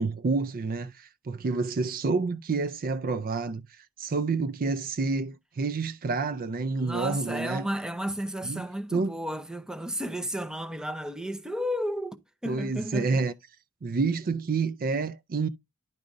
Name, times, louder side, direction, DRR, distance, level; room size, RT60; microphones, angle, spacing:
voice 1, 0.0-7.6 8.4-8.7 8.9-9.2 12.5-13.3 13.8-15.5, right 4 dB, 40° right, 0.4 m, -29 dB
voice 2, 6.8-12.2 12.4-13.3, equal, 5° right, 0.6 m, -33 dB
10.5 x 5.0 x 2.6 m
head